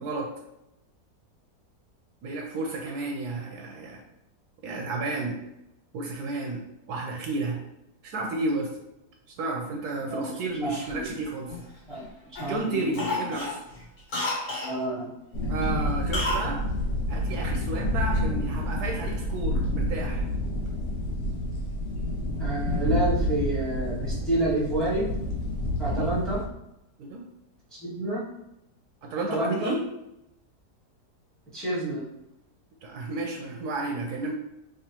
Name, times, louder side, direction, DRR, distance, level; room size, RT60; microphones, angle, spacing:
voice 1, 2.2-4.0 4.6-5.4 5.9-7.6 8.0-8.7 9.4-11.6 12.4-13.6 15.5-16.6 17.1-20.2 25.8-26.1 27.0-27.2 29.0-29.8 32.8-34.3, right 2 dB, 75° right, 1 dB, 1.1 m, -32 dB
voice 2, 10.0-10.3 10.6-11.1 11.9-12.0 12.3-13.2 14.5-15.1 15.4-15.6 22.4-25.1 25.8-26.4 27.8-28.2 29.3-29.7 31.5-32.0, right 2 dB, ahead, -6 dB, 0.9 m, -29 dB
Cough, 10.7-12.0 12.4-12.6 12.9-14.8 16.1-16.5 16.8-16.9, left 2 dB, 65° left, 1.5 m, -31 dB
sound 1, 15.3-26.4, left 1 dB, 85° left, 1.4 m, -29 dB
3.6 x 3.3 x 2.9 m, 0.86 s
omnidirectional pair, 1.8 m